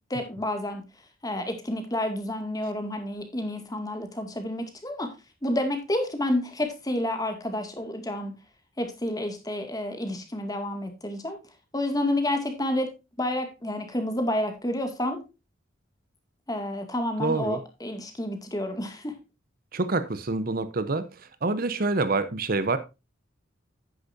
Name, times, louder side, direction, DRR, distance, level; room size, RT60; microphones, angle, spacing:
voice 1, 0.1-0.8 1.2-5.1 5.4-8.3 8.8-11.4 11.7-12.9 13.2-15.2 16.5-19.1, left 1 dB, 20° left, 6 dB, 2.1 m, -29 dB
voice 2, 17.2-17.6 19.7-21.1 21.4-22.8, right 3 dB, 50° right, 12 dB, 0.8 m, -26 dB
10.0 x 9.8 x 2.7 m, 0.26 s
head